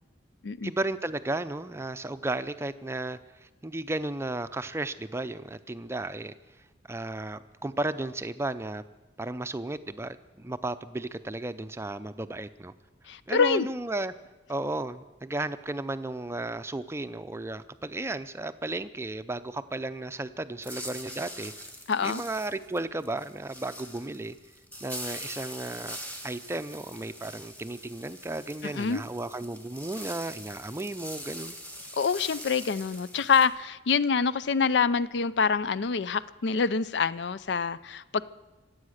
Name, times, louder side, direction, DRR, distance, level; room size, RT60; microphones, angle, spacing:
voice 1, 0.6-6.3 6.9-8.8 9.2-12.7 13.3-14.1 14.5-21.5 22.0-24.4 24.8-26.0 26.2-31.6, right 2 dB, 15° right, 11 dB, 0.5 m, -34 dB
voice 2, 13.1-13.7 21.9-22.2 28.6-29.0 32.0-38.2, left 5 dB, 65° left, 17 dB, 0.5 m, -26 dB
sound 1, 20.6-33.5, equal, 10° left, 1.7 m, -43 dB
25.0 x 8.5 x 6.5 m, 1.1 s
head